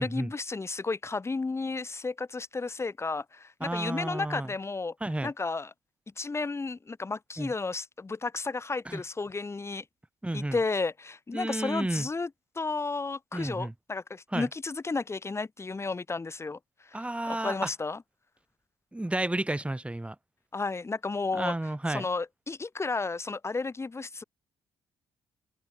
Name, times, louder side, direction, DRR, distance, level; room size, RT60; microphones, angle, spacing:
voice 1, 0.0-5.0 5.2-5.7 6.2-9.8 10.3-12.3 12.6-18.0 20.5-21.5 21.9-24.2, left 3 dB, 25° left, 1.7 m, -33 dB
voice 2, 3.6-4.5 5.0-5.3 7.4-7.5 8.9-9.0 10.2-10.6 11.3-12.1 13.3-13.7 14.3-14.5 16.9-17.7 18.9-20.2 21.3-22.1, right 1 dB, 10° right, 5.4 m, -31 dB
open air
supercardioid pair, 70°, 10 cm